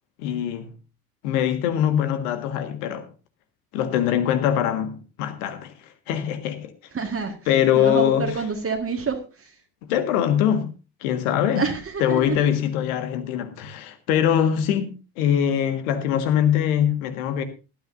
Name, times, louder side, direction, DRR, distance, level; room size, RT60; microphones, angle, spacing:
voice 1, 0.2-0.7 1.2-3.1 3.7-5.7 6.1-6.7 7.5-8.3 9.9-10.7 11.0-11.7 12.0-17.4, left 10 dB, 65° left, 1.8 m, -22 dB
voice 2, 6.9-7.4 7.8-9.5 11.6-12.4, right 5 dB, 30° right, 1.8 m, -27 dB
18.5 x 12.0 x 2.7 m
figure-of-eight pair, 55°, 48 cm